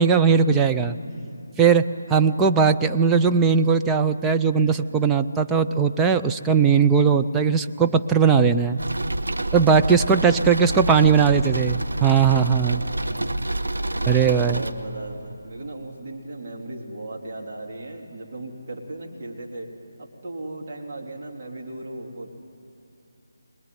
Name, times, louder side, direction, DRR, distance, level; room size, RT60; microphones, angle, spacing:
voice 1, 0.0-1.0 1.6-8.8 9.5-12.8 14.1-14.6, right 6 dB, 10° right, 5 dB, 0.5 m, -19 dB
voice 2, 0.9-1.4 2.0-2.5 9.4-10.1 10.4-11.5 12.6-13.3 13.6-19.7 20.0-22.3, right 2 dB, 45° right, 0 dB, 3.3 m, -38 dB
sound 1, 8.8-14.7, right 1 dB, 85° right, 1.4 m, -28 dB
24.0 x 20.5 x 9.5 m, 2.9 s
figure-of-eight pair, 160°, 0 cm